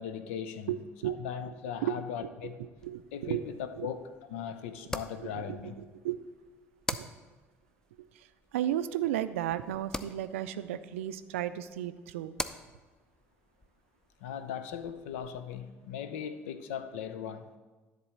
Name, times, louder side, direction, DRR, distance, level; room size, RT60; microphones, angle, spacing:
voice 1, 0.0-0.7 1.0-2.6 3.1-5.8 14.2-17.5, left 8 dB, 75° left, 0.6 m, -39 dB
voice 2, 0.7-1.2 1.8-2.0 2.2-3.5 3.7-3.9 5.2-6.2 6.9-7.1 8.1-12.4, right 12 dB, 75° right, 0.4 m, -34 dB
sound 1, 2.8-15.6, left 1 dB, 10° left, 0.5 m, -45 dB
10.5 x 3.8 x 7.2 m
hypercardioid pair, 60°, 7 cm